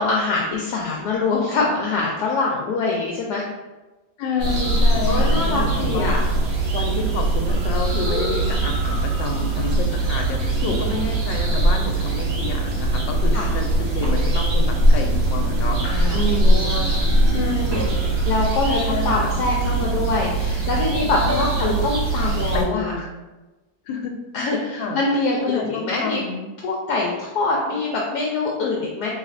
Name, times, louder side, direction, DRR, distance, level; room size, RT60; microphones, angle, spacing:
voice 1, 0.0-3.4 5.1-6.2 8.0-8.4 13.3-13.5 15.8-16.2 16.4-17.0 18.2-21.5 21.8-22.9 24.3-26.2 26.6-29.1, left 3 dB, 70° left, -2 dB, 1.1 m, -24 dB
voice 2, 4.2-6.3 6.7-17.0 17.3-18.0 18.6-19.4 21.2-21.9 22.5-23.1 23.9-24.2 24.8-25.0 25.4-26.5, left 3 dB, 90° left, 3 dB, 1.3 m, -29 dB
sound 1, 4.4-22.6, right 2 dB, 80° right, 1.5 m, -21 dB
sound 2, 14.0-14.5 17.7-18.2 21.3-21.6, left 1 dB, 15° right, 0.8 m, -31 dB
4.0 x 3.2 x 2.5 m, 1.1 s
omnidirectional pair, 1.9 m